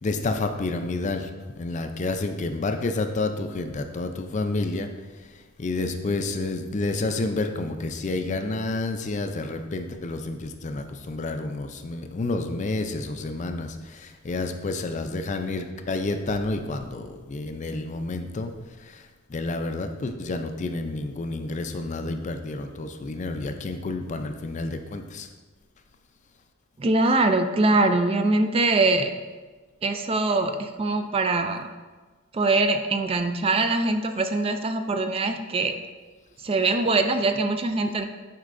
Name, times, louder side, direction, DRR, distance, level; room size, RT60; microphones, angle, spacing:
voice 1, 0.0-1.3 1.6-4.9 5.2-5.3 5.6-18.5 18.8-25.3, left 2 dB, 35° left, 7 dB, 0.4 m, -29 dB
voice 2, 26.8-29.1 29.8-31.7 32.3-35.8 36.4-38.1, right 2 dB, 30° right, 7 dB, 0.3 m, -23 dB
9.5 x 4.5 x 2.6 m, 1.3 s
head